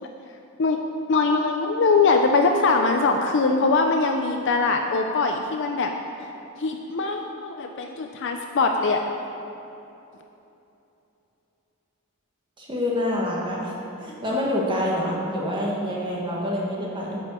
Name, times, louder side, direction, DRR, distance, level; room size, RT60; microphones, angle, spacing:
voice 1, 1.1-5.9 6.6-9.0, left 3 dB, 60° left, 4 dB, 0.5 m, -22 dB
voice 2, 12.6-13.7 14.0-17.2, left 1 dB, 20° right, -4 dB, 1.4 m, -26 dB
8.8 x 5.4 x 7.4 m, 2.9 s
head